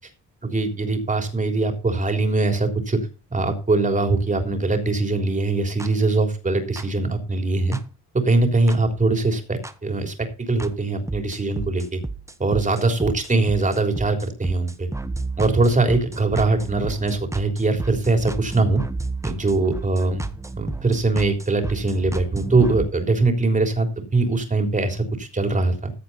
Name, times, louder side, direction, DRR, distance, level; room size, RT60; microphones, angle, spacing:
voice 1, 0.4-7.8 8.1-12.0 12.4-14.9 15.4-18.8 19.2-20.2 20.6-25.9, right 3 dB, 25° right, 5 dB, 3.5 m, -22 dB
sound 1, 5.8-5.9 6.8-6.9 7.7-7.8 8.7-8.8 9.6-9.7 10.6-10.7 11.1-22.9, right 2 dB, 10° right, 1.1 m, -32 dB
15.0 x 7.9 x 4.2 m, 0.32 s
cardioid pair, 90°, 30 cm